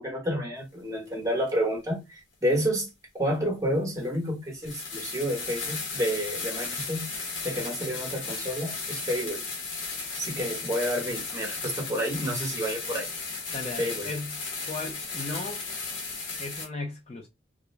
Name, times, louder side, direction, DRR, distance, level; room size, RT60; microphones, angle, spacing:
voice 1, 0.0-2.9 3.1-7.1 7.4-9.4 10.2-13.1 13.8-14.1, equal, 15° right, 1.0 m, -30 dB
sound 1, 1.5-1.6 3.3-3.4 4.0-4.2 4.6-16.7, left 4 dB, 70° left, 1.1 m, -35 dB
voice 2, 13.5-14.4 14.7-15.6 16.4-17.3, left 3 dB, 30° left, 0.4 m, -36 dB
2.4 x 2.1 x 3.1 m
head